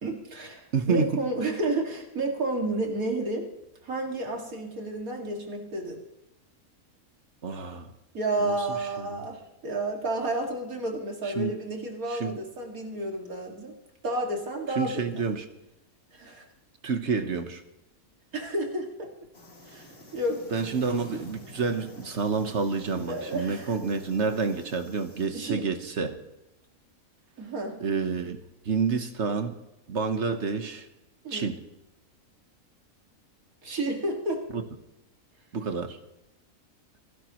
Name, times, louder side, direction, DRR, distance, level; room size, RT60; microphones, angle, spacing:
voice 1, 0.0-3.5 3.8-6.0 8.1-13.7 14.0-15.1 16.1-16.5 18.3-19.1 19.6-20.4 23.1-23.7 25.3-25.6 27.4-27.8 31.2-31.5 33.6-34.4, right 2 dB, 80° right, 1 dB, 2.7 m, -31 dB
voice 2, 0.7-1.2 7.4-7.9 8.4-8.5 9.0-9.2 11.2-11.6 12.1-12.4 14.8-15.4 16.8-17.6 20.5-26.2 27.8-28.4 28.6-29.5 29.9-30.9 31.3-31.6 34.5-34.6 35.5-36.0, right 5 dB, 55° right, 8 dB, 1.4 m, -28 dB
sound 1, 19.3-25.3, left 1 dB, 65° left, 4.1 m, -48 dB
28.5 x 11.5 x 3.1 m, 0.91 s
omnidirectional pair, 1.5 m